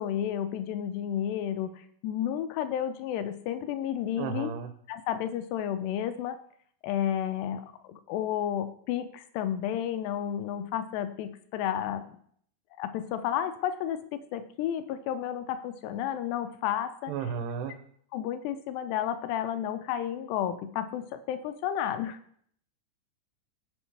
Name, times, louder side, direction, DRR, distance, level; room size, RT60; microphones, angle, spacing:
voice 1, 0.0-4.5 4.9-6.4 6.8-12.0 12.8-17.1 18.1-22.2, left 10 dB, 80° left, 9 dB, 2.5 m, -32 dB
voice 2, 4.2-4.7 17.1-17.8, right 7 dB, 80° right, 7 dB, 2.7 m, -33 dB
15.5 x 5.3 x 3.3 m, 0.63 s
omnidirectional pair, 4.9 m